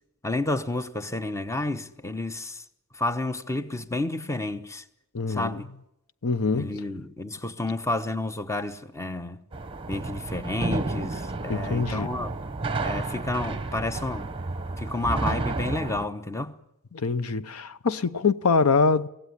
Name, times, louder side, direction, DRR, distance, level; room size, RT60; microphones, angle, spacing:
voice 1, 0.2-2.6 3.0-4.8 5.3-5.7 6.5-9.4 9.9-12.4 12.8-14.3 14.8-16.6, left 2 dB, 15° left, 1.0 m, -30 dB
voice 2, 5.1-5.5 6.2-6.8 11.5-12.1 16.9-19.1, left 4 dB, 75° left, 0.8 m, -24 dB
sound 1, 9.5-16.1, right 3 dB, 25° right, 1.0 m, -31 dB
24.0 x 17.0 x 9.8 m
head